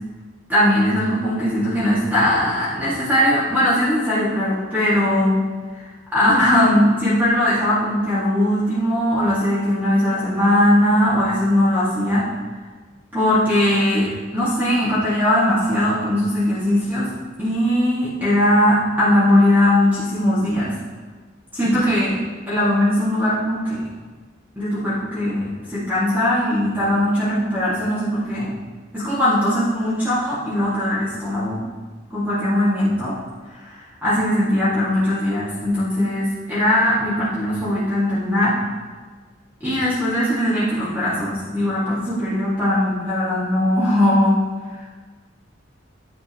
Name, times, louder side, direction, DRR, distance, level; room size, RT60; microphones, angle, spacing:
voice 1, 0.5-5.4 6.1-12.2 13.1-17.1 17.4-20.7 21.5-22.2 22.5-23.8 24.6-28.5 28.9-31.6 32.1-33.2 33.6-38.5 39.6-44.4, left 1 dB, 10° right, -11 dB, 2.2 m, -19 dB
10.5 x 7.7 x 3.1 m, 1.4 s
head